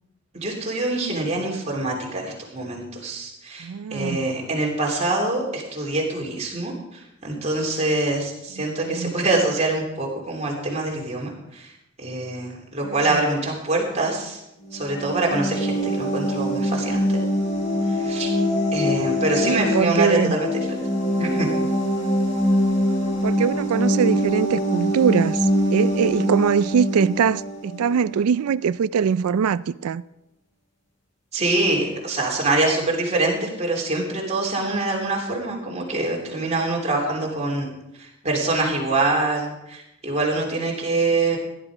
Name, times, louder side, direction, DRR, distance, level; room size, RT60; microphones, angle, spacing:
voice 1, 0.3-11.7 12.0-14.4 14.7-17.2 17.9-18.3 18.7-20.8 21.2-21.5 31.3-37.7 38.0-41.4, right 2 dB, 30° right, 3.0 m, -25 dB
voice 2, 3.6-4.4 8.6-9.1 12.8-13.2 19.4-20.4 23.2-30.0, right 7 dB, 80° right, 0.4 m, -22 dB
sound 1, 14.6-28.2, equal, 55° left, 6.8 m, -23 dB
16.0 x 11.0 x 4.9 m
head